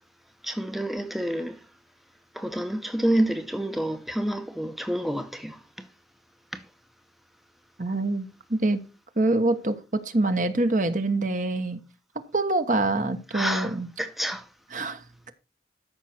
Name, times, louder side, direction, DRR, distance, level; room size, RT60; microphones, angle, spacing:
voice 1, 0.4-1.6 2.3-5.9 6.5-6.6 13.3-14.5, right 1 dB, ahead, 0.7 m, -28 dB
voice 2, 7.8-8.8 9.2-11.8 12.3-13.9 14.7-15.3, right 2 dB, 45° right, 1.1 m, -25 dB
13.0 x 6.1 x 4.3 m
head